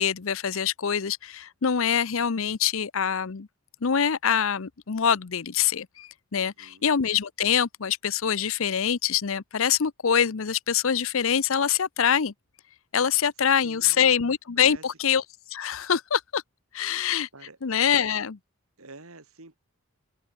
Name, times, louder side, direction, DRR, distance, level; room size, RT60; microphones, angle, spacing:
voice 1, 0.0-3.5 3.8-12.3 12.9-15.2 15.5-16.4 16.7-17.3 17.6-18.4, left 8 dB, 65° left, 0.6 m, -25 dB
voice 2, 6.3-6.9 13.6-14.2 14.6-14.8 17.0-17.6 18.8-19.6, right 3 dB, 75° right, 2.8 m, -48 dB
head